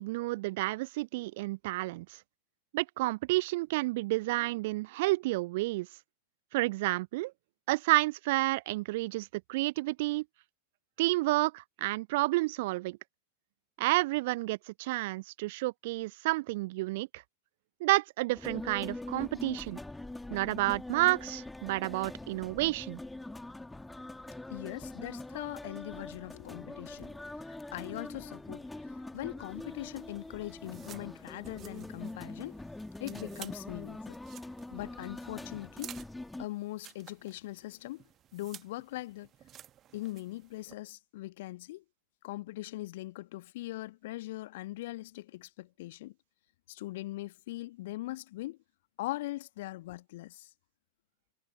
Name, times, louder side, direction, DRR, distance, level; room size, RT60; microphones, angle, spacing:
voice 1, 0.0-2.1 2.7-5.9 6.5-7.3 7.7-10.2 11.0-13.0 13.8-17.2 17.8-19.8 20.3-23.0, right 20 dB, 50° right, 0.7 m, -30 dB
sound 1, 18.3-36.5, left 2 dB, 5° left, 2.6 m, -43 dB
voice 2, 24.5-32.6 33.0-34.2 34.7-36.0 36.4-38.0 38.3-39.3 39.9-41.8 42.2-46.1 46.7-48.6 49.0-50.5, left 17 dB, 55° left, 1.5 m, -41 dB
sound 2, 29.4-40.7, right 11 dB, 30° right, 1.3 m, -54 dB
figure-of-eight pair, 90°, 0 cm